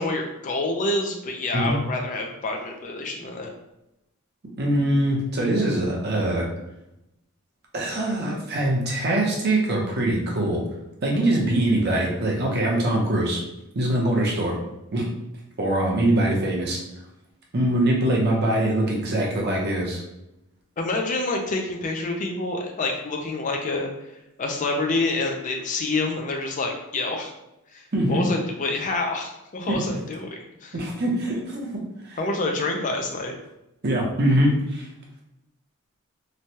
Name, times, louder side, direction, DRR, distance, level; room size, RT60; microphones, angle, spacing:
voice 1, 0.0-3.5 20.8-23.9 24.4-27.3 27.7-30.7 32.2-33.3, left 2 dB, 35° left, 2 dB, 0.4 m, -27 dB
voice 2, 4.6-6.5 7.7-10.6 11.0-13.4 13.7-14.6 14.9-15.1 15.6-16.8 17.5-20.0 27.9-28.2 29.7-29.8 30.7-31.8 32.1-32.2 33.8-34.9, right 1 dB, 50° right, -2 dB, 0.7 m, -23 dB
3.0 x 2.2 x 2.7 m, 0.89 s
head